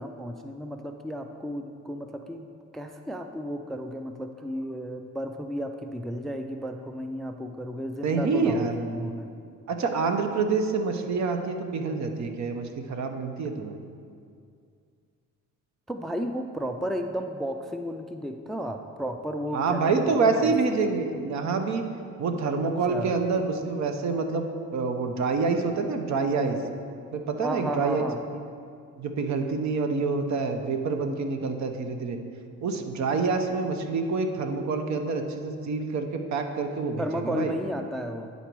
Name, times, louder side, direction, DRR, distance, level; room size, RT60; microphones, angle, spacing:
voice 1, 0.0-9.3 15.9-20.5 22.6-23.1 27.4-28.2 37.0-38.3, equal, ahead, 6 dB, 0.3 m, -33 dB
voice 2, 8.0-8.7 9.7-13.8 19.5-21.8 22.2-24.5 24.7-26.6 27.1-28.0 29.0-32.2 32.6-37.5, right 4 dB, 65° right, 5 dB, 0.8 m, -27 dB
9.9 x 4.0 x 4.6 m, 2.3 s
cardioid pair, 90°, 30 cm